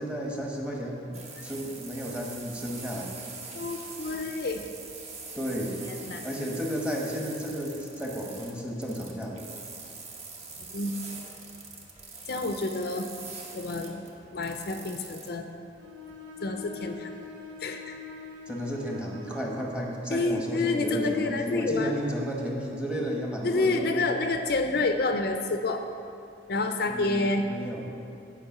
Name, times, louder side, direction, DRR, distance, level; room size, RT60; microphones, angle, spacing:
voice 1, 0.0-3.1 5.3-5.8 6.2-9.5 18.5-24.1 26.9-27.9, equal, 5° right, -2 dB, 1.0 m, -33 dB
sound 1, 1.1-15.3, right 4 dB, 35° right, 1.0 m, -44 dB
voice 2, 3.5-4.7 5.6-6.2 10.7-10.9 12.3-13.1 13.5-14.0 14.3-15.5 16.4-17.1 17.6-18.0 20.1-21.9 23.4-25.8 26.5-27.5, left 3 dB, 60° left, 6 dB, 0.5 m, -28 dB
Bowed string instrument, 15.8-19.6, left 4 dB, 85° right, 0.9 m, -43 dB
9.6 x 5.0 x 5.9 m, 2.5 s
head